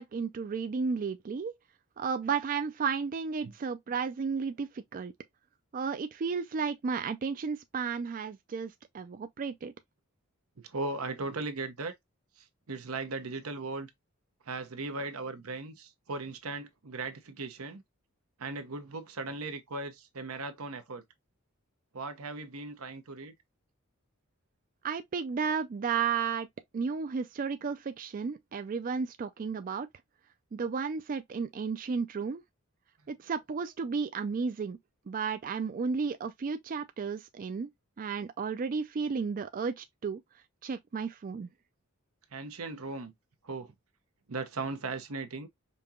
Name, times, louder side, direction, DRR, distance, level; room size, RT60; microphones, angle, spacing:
voice 1, 0.0-1.5 2.0-5.1 5.7-9.7 24.8-26.5 26.7-29.9 30.5-32.4 33.1-34.8 35.1-37.7 38.0-40.2 40.6-41.5, right 5 dB, 40° right, 0.3 m, -33 dB
voice 2, 10.6-12.0 12.4-13.9 14.5-17.8 18.4-21.0 21.9-23.3 42.3-43.1 43.4-43.7 44.3-45.5, right 3 dB, 85° right, 0.8 m, -38 dB
5.2 x 2.8 x 2.3 m
head